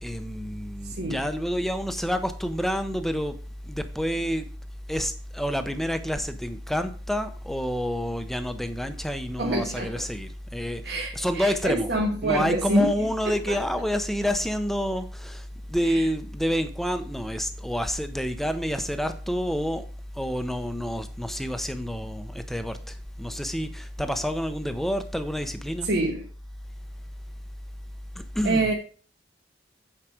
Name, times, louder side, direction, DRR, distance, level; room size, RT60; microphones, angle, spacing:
voice 1, 0.0-3.4 3.7-4.5 4.9-11.9 12.2-19.8 20.2-25.9 28.3-28.7, equal, ahead, 0.6 m, -28 dB
voice 2, 0.8-1.2 9.4-10.1 10.8-13.6 15.8-16.1 25.8-26.2 28.4-28.7, right 1 dB, 65° right, 1.2 m, -27 dB
8.9 x 4.8 x 4.9 m
head